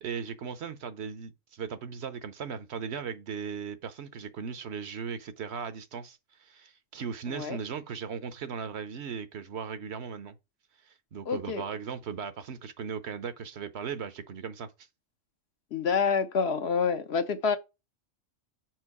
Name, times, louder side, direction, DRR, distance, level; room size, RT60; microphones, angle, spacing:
voice 1, 0.0-10.3 10.8-14.7, right 6 dB, 65° right, 0.9 m, -37 dB
voice 2, 7.3-7.6 11.3-11.6 15.7-17.6, left 5 dB, 60° left, 1.0 m, -27 dB
6.2 x 4.5 x 4.7 m
omnidirectional pair, 1.3 m